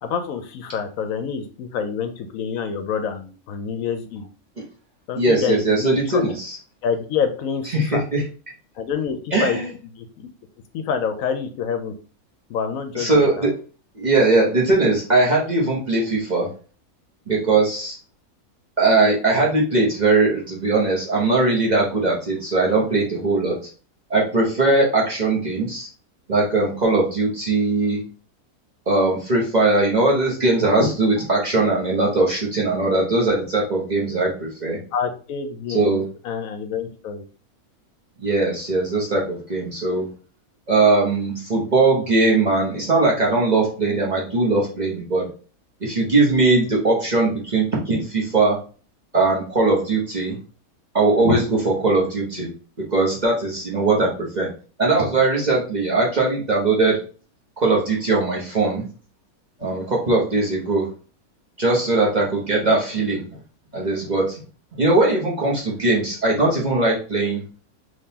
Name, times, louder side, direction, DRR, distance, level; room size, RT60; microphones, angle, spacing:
voice 1, 0.0-4.3 5.1-6.2 6.8-8.0 8.8-9.6 10.0-10.3 10.7-11.9 12.5-13.5 34.9-36.0 36.2-37.2, left 7 dB, 75° left, 8 dB, 0.9 m, -27 dB
voice 2, 5.2-6.6 7.7-8.2 9.3-9.6 12.9-13.5 14.0-16.5 17.3-18.0 18.8-23.6 24.1-25.9 26.3-28.0 28.9-34.8 35.7-36.0 38.2-40.1 40.7-45.3 45.8-48.6 49.1-50.4 50.9-52.5 52.9-54.5 54.8-57.0 57.6-58.8 59.6-60.9 61.6-63.4 63.7-64.4 64.8-67.4, right 3 dB, 35° right, -3 dB, 0.9 m, -20 dB
3.7 x 2.9 x 2.8 m, 0.37 s
omnidirectional pair, 1.5 m